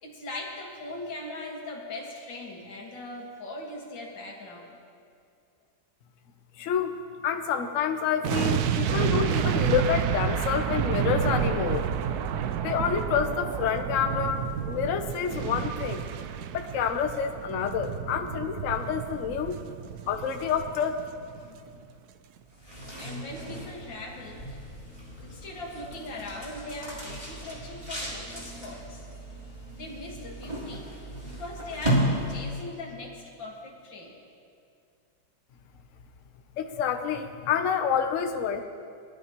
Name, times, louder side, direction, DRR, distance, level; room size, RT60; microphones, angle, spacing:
voice 1, 0.0-4.8 21.4-21.5 23.0-24.5 25.2-29.0 29.7-30.9 31.2-34.2, left 2 dB, 70° left, -1 dB, 2.5 m, -40 dB
voice 2, 6.6-6.9 7.2-12.2 12.6-16.0 16.5-19.6 20.1-21.0 36.6-38.6, left 7 dB, 55° left, 5 dB, 0.9 m, -28 dB
sound 1, 8.2-21.4 21.7-21.8, right 8 dB, 75° right, 0.9 m, -30 dB
sound 2, 22.4-32.8, equal, 15° right, 3.2 m, -34 dB
20.5 x 12.0 x 3.0 m, 2.4 s
omnidirectional pair, 2.1 m